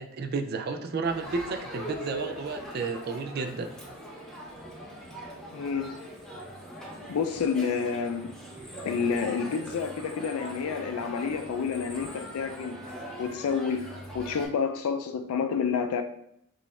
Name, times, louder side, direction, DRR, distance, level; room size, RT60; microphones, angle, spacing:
voice 1, 0.0-3.7, right 4 dB, 45° right, 0.3 m, -32 dB
Crowd, 1.0-14.5, equal, 5° left, 0.6 m, -41 dB
voice 2, 5.5-6.0 7.1-8.4 8.8-12.8 13.2-13.9 14.1-16.0, left 6 dB, 90° left, 0.3 m, -29 dB
4.1 x 2.5 x 4.2 m
head